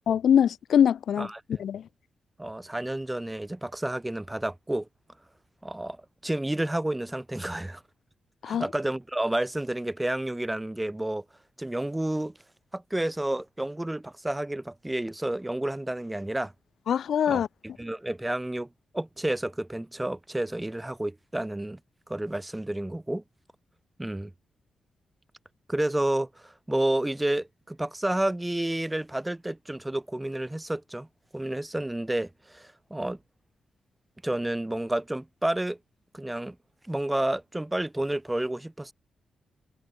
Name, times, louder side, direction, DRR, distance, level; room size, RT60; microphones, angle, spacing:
voice 1, 0.1-1.9 8.4-8.7 16.9-17.5, left 8 dB, 70° left, 0.4 m, -23 dB
voice 2, 2.4-4.9 5.6-7.8 8.5-11.2 11.6-12.4 12.7-16.5 17.3-17.4 17.8-18.7 18.9-21.8 22.1-23.2 24.0-24.3 25.7-31.1 31.3-33.2 34.2-35.8 36.1-36.6 36.9-38.9, right 1 dB, 10° right, 0.8 m, -30 dB
wide cardioid pair, 155°, 0 cm